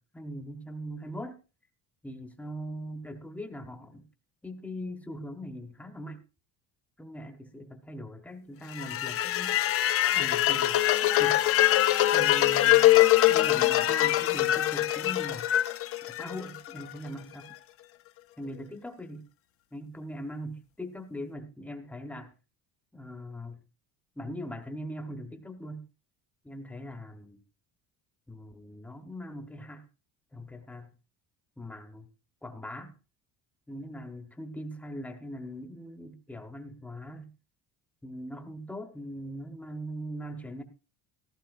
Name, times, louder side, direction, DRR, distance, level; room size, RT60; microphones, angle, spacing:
voice 1, 0.0-1.4 2.0-4.0 4.4-6.2 7.0-9.6 10.1-11.4 12.1-12.9 13.3-15.5 16.1-17.5 18.4-19.2 19.7-22.3 22.9-23.6 24.2-25.9 26.4-27.4 28.3-29.8 30.3-30.9 31.6-32.1 32.4-32.9 33.7-37.3 38.0-40.6, equal, 5° left, 6 dB, 0.9 m, -41 dB
sound 1, 8.7-16.8, left 14 dB, 35° left, 0.5 m, -23 dB
15.0 x 13.5 x 2.5 m, 0.32 s
cardioid pair, 175°, 38 cm